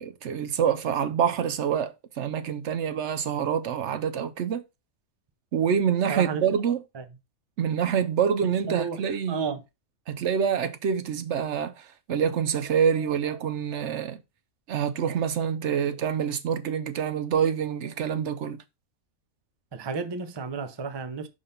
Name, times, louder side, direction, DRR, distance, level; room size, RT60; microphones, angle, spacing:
voice 1, 0.0-4.6 5.5-6.8 7.6-9.5 10.1-14.2 14.7-18.6, right 8 dB, 65° right, 0.8 m, -26 dB
voice 2, 6.1-6.4 6.9-7.0 8.7-9.0 9.3-9.6 19.7-21.3, right 5 dB, 40° right, 0.4 m, -32 dB
5.7 x 3.8 x 5.1 m
omnidirectional pair, 1.5 m